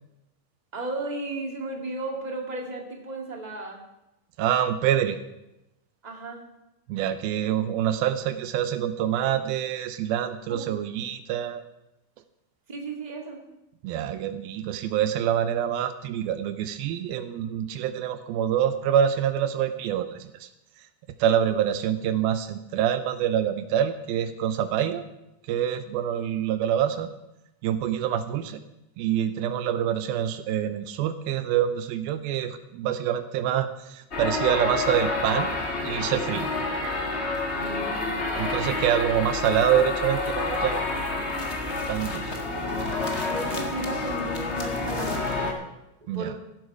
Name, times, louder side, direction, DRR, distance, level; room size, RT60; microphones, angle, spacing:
voice 1, 0.7-3.8 6.0-6.4 10.5-10.6 12.7-13.4 37.5-38.7 43.3-45.6 46.1-46.3, right 2 dB, 20° right, 1 dB, 1.0 m, -35 dB
voice 2, 4.4-5.2 6.9-11.6 13.8-20.5 21.2-25.0 25.4-27.1 27.6-28.6 29.0-35.5 35.8-36.5 38.4-40.8 41.9-42.3 46.1-46.3, right 10 dB, 85° right, 11 dB, 2.6 m, -26 dB
sound 1, 34.1-45.5, left 3 dB, 50° left, 0.7 m, -29 dB
15.5 x 11.5 x 4.7 m, 0.89 s
omnidirectional pair, 4.3 m